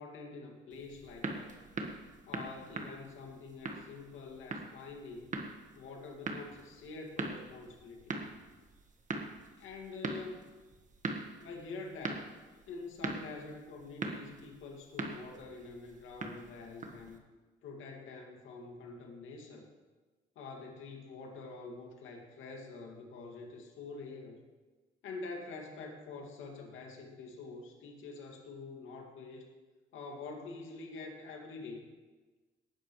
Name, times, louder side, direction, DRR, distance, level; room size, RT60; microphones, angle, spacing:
voice 1, 0.0-1.6 2.3-5.4 5.7-8.2 9.6-10.4 11.4-12.3 12.7-17.2 17.6-19.7 20.4-24.4 25.0-29.4 29.9-31.9, left 3 dB, 85° left, 1 dB, 2.3 m, -46 dB
sound 1, 0.7-17.2, right 3 dB, 40° right, 1.6 m, -42 dB
18.5 x 10.5 x 3.2 m, 1.3 s
cardioid pair, 90°, 20 cm